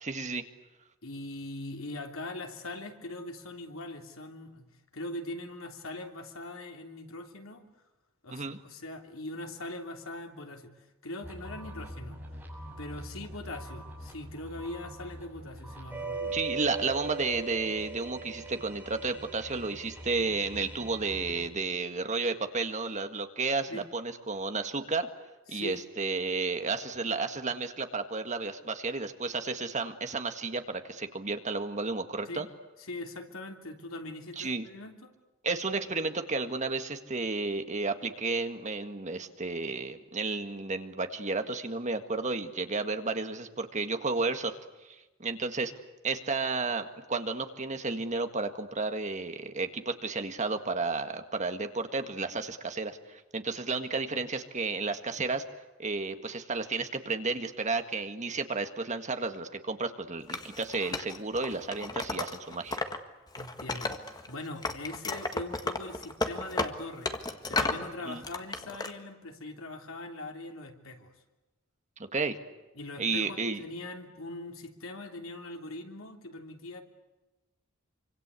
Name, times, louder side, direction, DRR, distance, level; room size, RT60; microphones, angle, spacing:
voice 1, 0.0-0.4 8.3-8.6 16.3-25.1 25.5-32.5 34.4-34.7 35.4-44.6 45.2-45.7 46.0-55.4 55.8-62.8 68.1-68.2 72.0-72.4 73.0-73.6, right 3 dB, 35° right, 7 dB, 1.8 m, -32 dB
voice 2, 1.0-4.7 4.9-7.6 8.2-12.2 12.8-16.5 23.7-23.8 25.5-25.8 32.3-32.4 32.8-35.1 54.1-54.2 63.3-67.1 67.5-71.1 72.7-76.8, left 2 dB, 80° left, 4 dB, 3.2 m, -41 dB
sound 1, 11.2-21.5, right 3 dB, 10° right, 7.3 m, -41 dB
Wood, 60.3-63.0 63.3-64.3 64.6-67.9 68.2-68.9, left 3 dB, 20° left, 1.7 m, -33 dB
26.5 x 25.5 x 8.3 m, 1.0 s
head